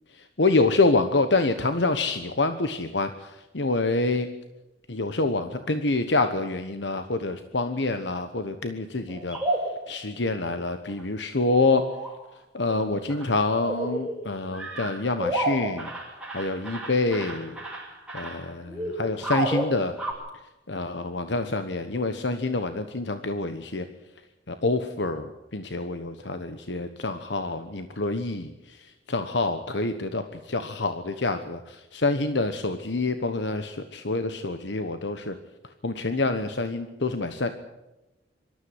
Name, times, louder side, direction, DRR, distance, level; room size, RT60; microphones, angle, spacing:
voice 1, 0.1-4.3 4.9-9.4 9.9-11.9 12.5-15.9 16.3-17.6 18.1-19.9 20.7-23.9 24.5-28.8 29.1-35.3 35.8-37.6, left 3 dB, 75° left, 8 dB, 1.2 m, -27 dB
sound 1, 9.1-9.9 10.9-11.0 11.5-12.2 12.7-12.8 13.1-13.3 13.6-14.2 14.5-20.1, right 1 dB, 5° right, 6.4 m, -31 dB
24.5 x 13.5 x 9.7 m, 1.0 s
head